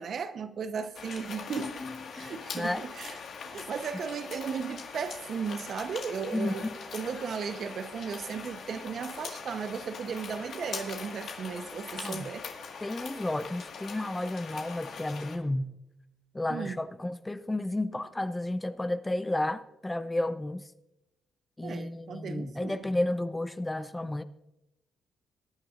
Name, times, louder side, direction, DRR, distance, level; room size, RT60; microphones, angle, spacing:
voice 1, 0.0-1.7 2.2-3.2 3.5-6.7 6.9-12.4 16.5-16.8 21.6-22.8, right 6 dB, 55° right, 0.9 m, -36 dB
sound 1, 0.9-15.4, left 5 dB, 65° left, 1.7 m, -42 dB
voice 2, 1.5-2.8 6.3-6.8 12.0-12.3 12.8-15.7 16.3-20.7 21.6-24.2, left 1 dB, 15° left, 0.6 m, -32 dB
22.0 x 10.0 x 2.5 m
cardioid pair, 90°, 0 cm